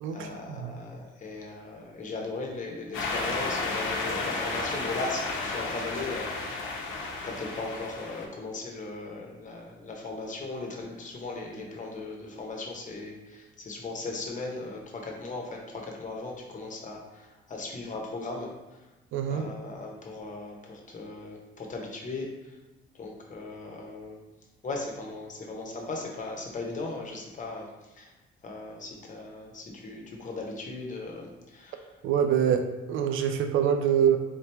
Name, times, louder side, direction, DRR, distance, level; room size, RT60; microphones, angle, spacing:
voice 1, 0.1-6.8 7.2-18.5 19.3-22.3 22.9-24.2 24.6-27.7 28.0-28.1 28.4-31.9, left 3 dB, 40° left, 0 dB, 0.9 m, -38 dB
sound 1, 2.9-8.2, left 3 dB, 90° left, 0.7 m, -32 dB
voice 2, 19.1-19.4 32.0-34.2, right 8 dB, 85° right, 7 dB, 0.4 m, -25 dB
3.7 x 2.9 x 3.3 m, 1.1 s
cardioid pair, 90°, 20 cm